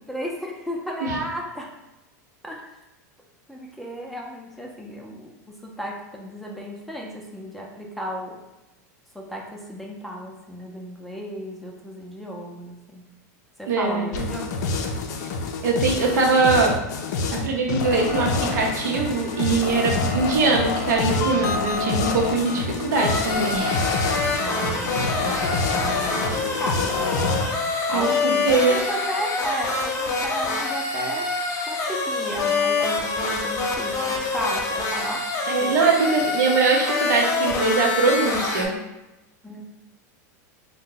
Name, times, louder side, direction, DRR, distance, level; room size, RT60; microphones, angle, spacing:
voice 1, 0.0-1.7 2.4-2.8 3.5-8.4 9.1-13.1 13.6-14.4 24.4-24.9 25.2-31.3 31.7-35.3 35.6-36.0 39.4-39.6, equal, ahead, -2 dB, 0.5 m, -34 dB
voice 2, 13.7-14.4 15.6-16.7 17.4-23.7 27.9-28.1 28.4-28.7 35.5-38.7, right 4 dB, 80° right, 0 dB, 0.7 m, -22 dB
sound 1, 14.1-27.5, left 4 dB, 75° left, 0.4 m, -27 dB
sound 2, 17.9-27.6, right 3 dB, 60° right, 1.1 m, -41 dB
sound 3, 22.9-38.7, left 3 dB, 35° left, 0.8 m, -26 dB
2.7 x 2.1 x 3.7 m, 0.98 s
hypercardioid pair, 110°, 9 cm